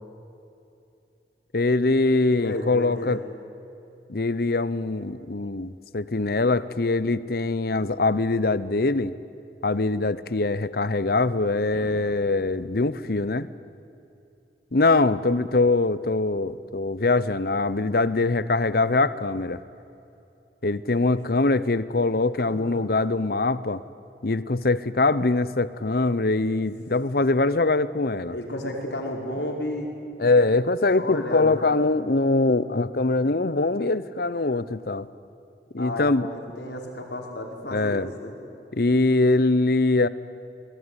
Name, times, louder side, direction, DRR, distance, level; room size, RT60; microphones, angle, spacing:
voice 1, 1.5-3.2 4.1-9.1 9.6-13.5 14.7-19.6 20.6-23.8 24.2-28.4 30.2-35.1 35.7-36.3 37.7-38.1 38.7-40.1, left 3 dB, 55° left, 16 dB, 0.9 m, -23 dB
voice 2, 2.4-3.2 22.4-22.8 28.3-29.9 31.0-31.7 35.8-38.4, left 1 dB, 75° left, 1 dB, 4.9 m, -32 dB
sound 1, 11.7-12.8, equal, 35° right, 3.4 m, -45 dB
27.5 x 20.0 x 9.9 m, 2.8 s
head